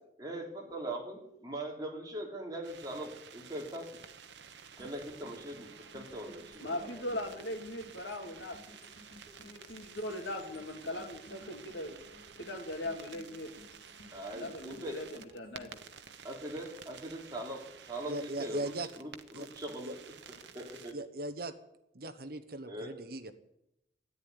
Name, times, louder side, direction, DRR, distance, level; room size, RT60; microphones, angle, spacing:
voice 1, 0.2-3.9 4.8-7.1 14.1-15.0 16.2-20.0 20.4-21.0 22.7-22.9, right 1 dB, 20° right, 0 dB, 3.1 m, -41 dB
sound 1, 2.6-20.9, right 7 dB, 75° right, 1.1 m, -52 dB
sound 2, 4.8-17.0 17.4-17.5, left 1 dB, 55° left, 6.7 m, -58 dB
voice 2, 6.6-8.6 9.4-12.0 12.4-13.5 14.3-15.8, left 1 dB, 85° left, 4 dB, 2.7 m, -39 dB
voice 3, 18.1-18.9 19.3-19.5 19.8-19.9 20.9-21.5 21.9-23.3, right 2 dB, 55° right, 11 dB, 1.1 m, -38 dB
13.5 x 10.5 x 9.7 m, 0.83 s
head